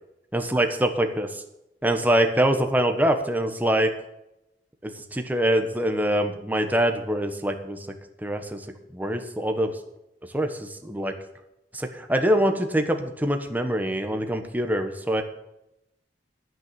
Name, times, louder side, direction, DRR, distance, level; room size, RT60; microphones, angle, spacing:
voice 1, 0.3-1.4 1.8-3.9 4.8-7.8 8.2-8.6 8.9-9.7 10.3-11.1 11.7-15.2, right 1 dB, 10° right, 5 dB, 1.3 m, -24 dB
11.0 x 9.3 x 6.9 m, 0.87 s
head